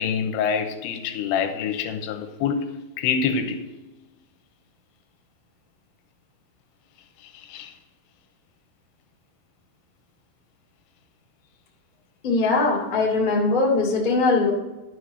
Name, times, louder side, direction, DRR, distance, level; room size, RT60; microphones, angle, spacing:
voice 1, 0.0-2.7 3.0-3.6 7.2-7.7 12.9-13.1, left 6 dB, 85° left, 3.1 m, -26 dB
voice 2, 12.2-14.5, left 3 dB, 50° left, 0.5 m, -21 dB
12.5 x 4.9 x 6.5 m
omnidirectional pair, 5.3 m